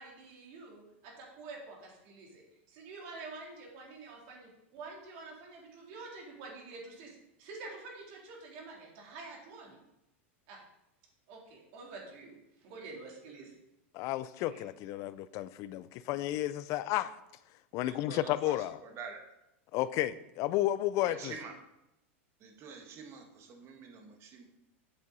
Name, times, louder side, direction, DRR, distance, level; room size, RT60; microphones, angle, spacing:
voice 1, 0.0-9.8 10.5-10.6 11.3-12.3 12.6-13.5 14.5-14.6, right 3 dB, 60° right, -1 dB, 3.3 m, -48 dB
voice 2, 13.9-17.1 17.7-18.8 19.7-21.4, left 14 dB, 50° left, 15 dB, 0.5 m, -32 dB
voice 3, 17.8-18.6 18.8-19.3 21.0-21.5 22.4-24.5, right 5 dB, 40° right, 4 dB, 1.7 m, -47 dB
8.6 x 7.2 x 4.1 m, 0.86 s
hypercardioid pair, 115°, 7 cm